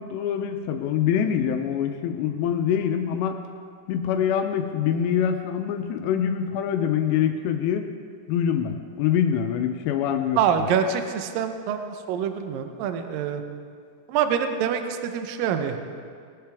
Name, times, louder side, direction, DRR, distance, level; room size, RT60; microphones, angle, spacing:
voice 1, 0.0-3.4 3.9-7.9 8.3-10.7, left 8 dB, 85° left, 6 dB, 2.8 m, -25 dB
voice 2, 10.4-13.4 14.1-15.8, right 7 dB, 80° right, 7 dB, 2.0 m, -25 dB
20.0 x 11.5 x 3.5 m, 2.2 s
omnidirectional pair, 5.0 m